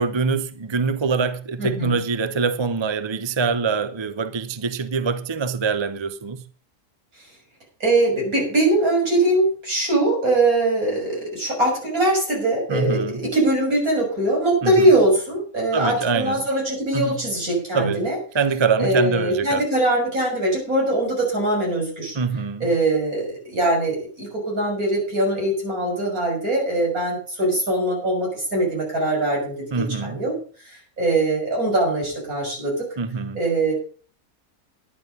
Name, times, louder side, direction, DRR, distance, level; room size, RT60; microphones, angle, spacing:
voice 1, 0.0-6.4 12.7-13.2 14.6-14.9 15.7-16.4 16.9-17.1 17.7-18.1 18.3-19.6 22.1-22.7 29.7-30.2 33.0-33.4, right 5 dB, 25° right, 0.6 m, -24 dB
voice 2, 1.6-2.0 7.8-18.2 18.8-22.2 22.6-30.4 30.6-32.9 33.3-33.7, right 1 dB, 70° right, 6.9 m, -22 dB
11.5 x 10.5 x 5.4 m
omnidirectional pair, 1.6 m